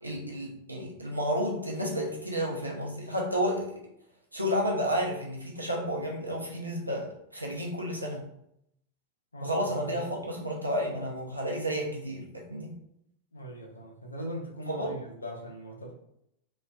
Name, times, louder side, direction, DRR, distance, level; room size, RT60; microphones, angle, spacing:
voice 1, 0.0-3.8 4.3-8.3 9.4-12.7 14.7-15.0, equal, 85° right, -1 dB, 0.6 m, -31 dB
voice 2, 9.3-10.1 13.3-15.9, right 1 dB, 80° left, 1 dB, 0.6 m, -40 dB
3.0 x 2.5 x 2.2 m, 0.76 s
figure-of-eight pair, 90°, 0 cm